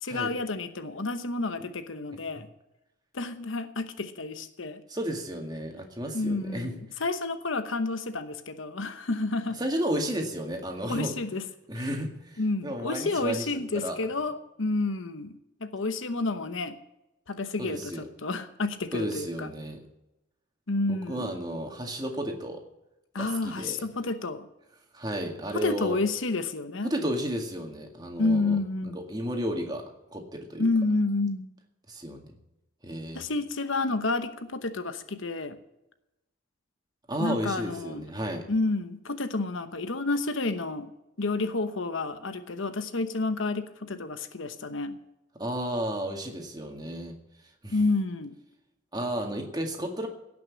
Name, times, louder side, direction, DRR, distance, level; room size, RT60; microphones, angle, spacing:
voice 1, 0.0-2.5 3.1-4.8 6.1-9.6 10.9-11.4 12.4-15.3 15.6-16.8 17.3-19.5 20.7-21.3 23.1-24.5 25.5-26.9 28.2-29.0 30.6-31.5 33.1-35.6 37.2-38.0 38.5-40.9 41.2-45.0 47.7-48.3, left 3 dB, 80° left, 10 dB, 1.0 m, -30 dB
voice 2, 4.9-6.7 9.6-11.1 11.7-13.5 13.7-14.0 17.6-18.0 18.9-19.8 20.9-22.6 23.2-23.8 24.9-26.0 26.8-28.6 28.9-29.8 30.1-30.7 31.9-32.4 32.8-33.3 37.1-38.5 45.4-47.2 47.6-47.8 48.9-50.1, equal, 20° right, 3 dB, 2.0 m, -33 dB
17.0 x 6.2 x 8.6 m, 0.92 s
head